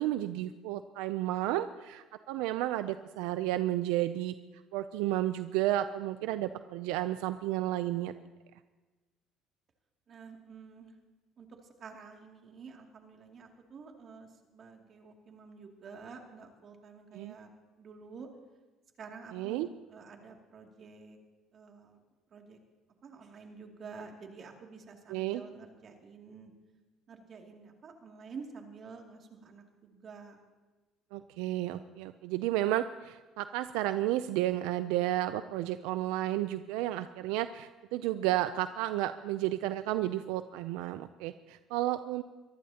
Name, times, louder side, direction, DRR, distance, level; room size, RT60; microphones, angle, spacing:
voice 1, 0.0-4.3 4.7-8.1 17.1-17.3 19.3-19.7 25.1-25.4 31.1-42.2, right 14 dB, 90° right, 11 dB, 0.4 m, -32 dB
voice 2, 10.1-11.0 11.4-17.5 17.8-18.3 19.0-21.2 21.5-22.0 22.3-22.6 23.0-26.5 27.1-30.4, right 5 dB, 45° right, 2 dB, 2.5 m, -49 dB
23.5 x 14.5 x 2.9 m, 1.2 s
cardioid pair, 95°, 0 cm